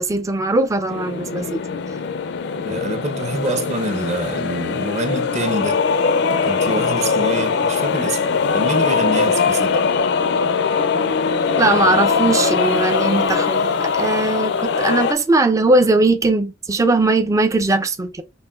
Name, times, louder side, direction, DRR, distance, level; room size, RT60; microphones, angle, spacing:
voice 1, 0.0-1.6 11.6-18.2, right 2 dB, 15° right, 0.3 m, -19 dB
sound 1, 0.9-15.1, left 5 dB, 65° left, 0.4 m, -21 dB
voice 2, 2.6-5.8 6.5-9.8, right 1 dB, 40° right, 0.8 m, -26 dB
5.5 x 2.5 x 2.3 m
head